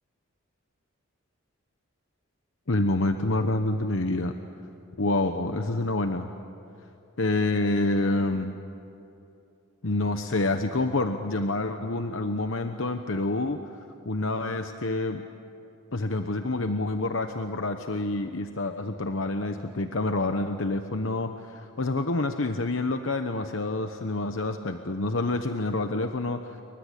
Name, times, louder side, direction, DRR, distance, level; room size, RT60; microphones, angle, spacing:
voice 1, 2.7-4.4 5.0-6.3 7.2-8.5 9.8-13.6 14.0-15.2 15.9-26.6, left 2 dB, 65° left, 7 dB, 1.0 m, -27 dB
28.5 x 24.0 x 8.3 m, 2.9 s
head